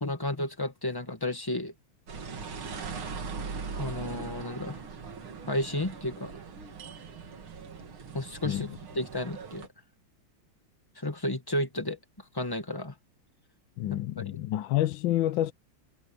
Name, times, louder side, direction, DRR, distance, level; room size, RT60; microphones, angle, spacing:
voice 1, 0.0-1.7 3.8-4.8 5.5-6.3 8.1-8.7 9.0-9.7 11.0-12.0 12.3-12.9 14.3-14.4, left 1 dB, 10° left, 1.9 m, -32 dB
sound 1, 2.1-9.7, right 5 dB, 85° right, 3.1 m, -40 dB
voice 2, 13.8-15.5, left 13 dB, 75° left, 1.4 m, -28 dB
omnidirectional pair, 2.2 m